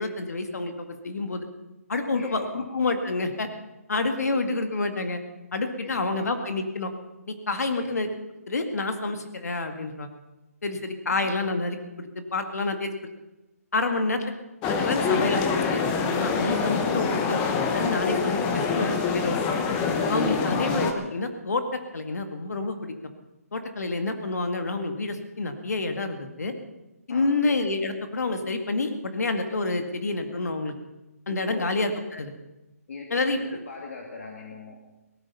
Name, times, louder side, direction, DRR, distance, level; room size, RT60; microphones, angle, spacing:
voice 1, 0.0-1.5 1.9-3.5 3.9-5.2 5.5-6.9 7.3-8.1 8.5-10.1 10.6-12.9 13.7-14.3 14.8-15.8 16.2-17.4 17.7-19.4 20.1-21.6 21.9-22.9 23.5-26.5 27.1-30.7 31.3-32.3 33.1-33.6, left 3 dB, 80° left, 6 dB, 2.0 m, -28 dB
sound 1, 14.6-20.9, left 5 dB, 15° left, 0.9 m, -25 dB
voice 2, 32.9-34.8, left 4 dB, 55° left, 1 dB, 2.4 m, -39 dB
18.0 x 14.0 x 5.5 m, 1.0 s
hypercardioid pair, 170°, 9 cm